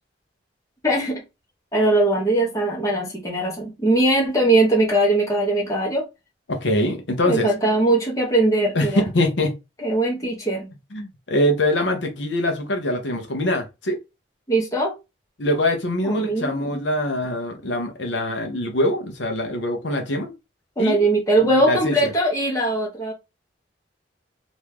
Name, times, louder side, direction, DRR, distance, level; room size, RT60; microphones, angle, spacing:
voice 1, 0.8-1.2 1.7-6.0 7.3-9.1 9.8-10.7 14.5-14.9 16.0-16.8 20.8-23.1, right 2 dB, 15° left, 1.1 m, -20 dB
voice 2, 6.5-7.5 8.7-9.5 10.9-14.0 15.4-20.3 20.8-21.0 21.4-22.1, left 1 dB, 75° left, 0.8 m, -23 dB
3.0 x 2.6 x 3.5 m
head